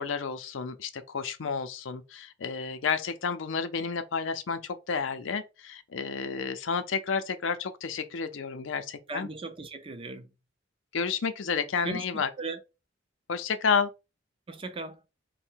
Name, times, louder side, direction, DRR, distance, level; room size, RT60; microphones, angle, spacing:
voice 1, 0.0-9.3 10.9-12.3 13.3-13.9, left 5 dB, 80° left, 0.5 m, -31 dB
voice 2, 9.1-10.3 11.8-12.6 14.5-15.0, right 3 dB, 30° right, 0.4 m, -37 dB
3.6 x 2.1 x 4.3 m
head